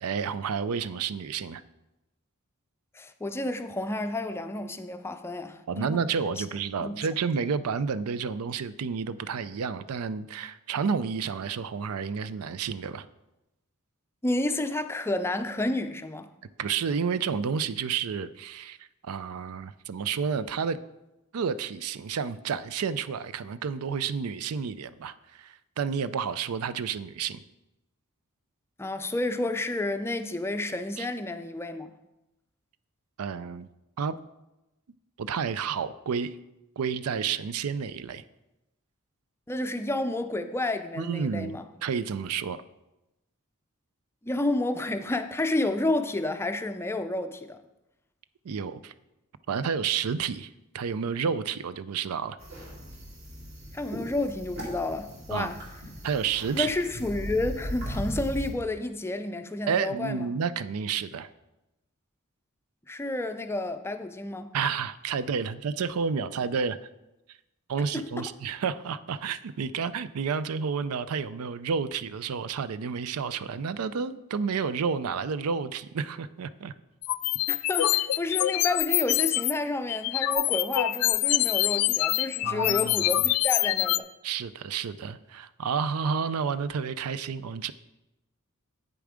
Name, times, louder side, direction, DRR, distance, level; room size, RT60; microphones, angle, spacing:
voice 1, 0.0-1.6 5.7-13.1 16.6-18.8 19.0-20.8 21.3-27.4 31.0-31.1 33.2-33.7 34.0-34.1 35.2-36.3 36.8-38.2 41.0-42.6 48.4-48.9 49.5-52.4 55.3-55.5 56.0-56.7 59.7-61.3 64.5-66.8 67.7-76.7 82.4-83.1 84.2-87.7, right 6 dB, 85° right, 0.4 m, -30 dB
voice 2, 2.9-6.0 6.4-6.5 6.8-7.0 14.2-16.3 28.8-31.9 39.5-41.7 44.2-47.6 53.7-55.6 56.6-60.3 62.9-64.5 67.9-68.2 77.5-84.1, left 2 dB, 10° left, 0.4 m, -30 dB
sound 1, 52.4-58.5, equal, 50° right, 2.6 m, -38 dB
sound 2, 77.0-79.5 79.9-84.0, left 16 dB, 85° left, 0.3 m, -25 dB
8.4 x 6.9 x 5.0 m
head